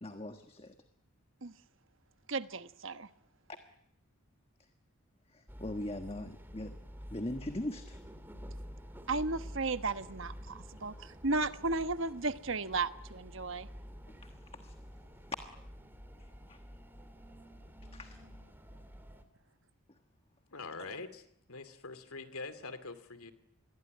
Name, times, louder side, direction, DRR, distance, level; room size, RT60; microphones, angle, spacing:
voice 1, 0.0-0.7 5.3-6.7 7.1-8.0 14.2-14.7 16.5-16.6 17.9-18.2, left 1 dB, 25° left, 7 dB, 1.4 m, -40 dB
voice 2, 2.3-3.1 9.1-13.7, right 3 dB, 55° right, 11 dB, 1.2 m, -34 dB
sound 1, 5.5-19.2, equal, 10° right, 2.2 m, -49 dB
voice 3, 20.5-21.2 21.5-23.3, left 3 dB, 75° left, 12 dB, 2.5 m, -44 dB
27.5 x 21.5 x 9.5 m, 0.74 s
head